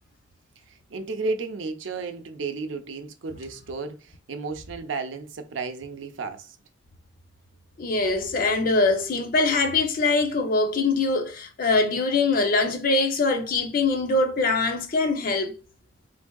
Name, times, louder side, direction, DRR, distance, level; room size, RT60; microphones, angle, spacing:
voice 1, 0.7-6.6, right 4 dB, 85° right, 0.6 m, -33 dB
voice 2, 7.8-15.6, left 3 dB, 50° left, 0.6 m, -23 dB
3.5 x 3.3 x 2.3 m
head